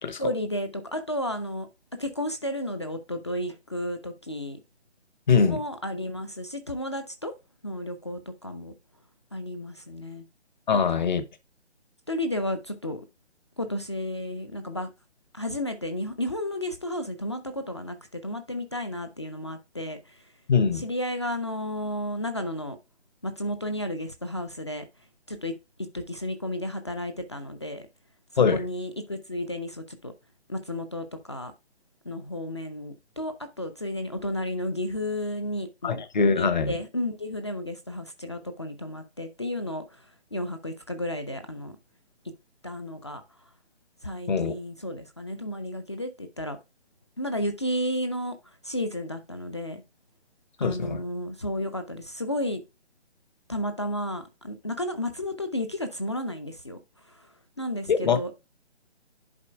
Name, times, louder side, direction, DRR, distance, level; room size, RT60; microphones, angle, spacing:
voice 1, 0.2-1.7 2.0-4.6 5.5-7.3 7.6-8.7 9.3-10.2 10.7-11.1 12.1-13.0 13.6-14.9 15.3-20.3 20.7-22.8 23.2-24.9 25.3-25.5 25.9-27.9 28.3-30.1 30.5-31.5 32.0-36.0 36.4-41.8 42.6-43.2 44.0-46.6 47.2-49.8 50.6-52.6 53.5-56.8 57.1-58.3, left 1 dB, 25° left, 0.5 m, -32 dB
voice 2, 5.3-5.6 10.7-11.2 20.5-20.8 28.4-28.6 35.8-36.7 44.3-44.5 50.6-51.0 57.9-58.4, left 5 dB, 40° left, 1.0 m, -23 dB
11.0 x 4.2 x 2.3 m
figure-of-eight pair, 145°, 33 cm